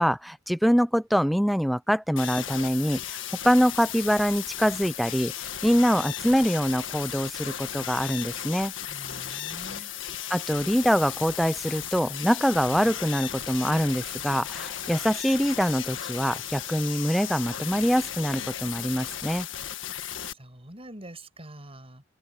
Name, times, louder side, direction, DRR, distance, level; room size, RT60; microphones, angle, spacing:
voice 1, 0.0-3.2 3.4-5.3 5.6-8.7 10.3-19.5, equal, ahead, 0.6 m, -24 dB
sound 1, 2.2-20.3, left 10 dB, 90° left, 1.6 m, -35 dB
voice 2, 8.8-9.9 20.2-22.0, right 1 dB, 30° right, 6.8 m, -45 dB
head